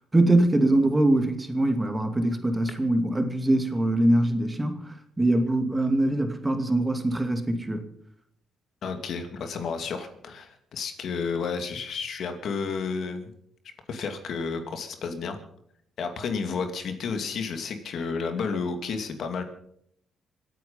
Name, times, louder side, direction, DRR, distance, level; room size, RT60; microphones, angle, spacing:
voice 1, 0.0-7.8, right 1 dB, 15° right, 6 dB, 2.4 m, -23 dB
voice 2, 8.8-13.3 13.9-15.4 16.0-19.4, left 5 dB, 65° left, 6 dB, 2.5 m, -31 dB
26.0 x 9.3 x 5.6 m, 0.70 s
cardioid pair, 90°, 0 cm